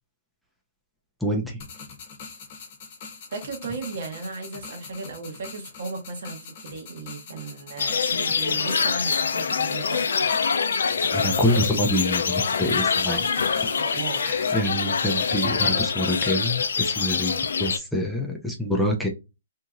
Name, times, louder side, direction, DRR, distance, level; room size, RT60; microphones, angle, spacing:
voice 1, 1.2-1.6 11.1-13.3 14.2-19.1, equal, ahead, 0.5 m, -26 dB
sound 1, 1.6-14.6, left 5 dB, 45° left, 0.8 m, -43 dB
voice 2, 3.3-10.3 13.8-14.3, right 4 dB, 60° right, 1.1 m, -36 dB
sound 2, 7.8-17.8, left 5 dB, 80° left, 0.3 m, -25 dB
2.8 x 2.6 x 2.4 m
hypercardioid pair, 140°, 0 cm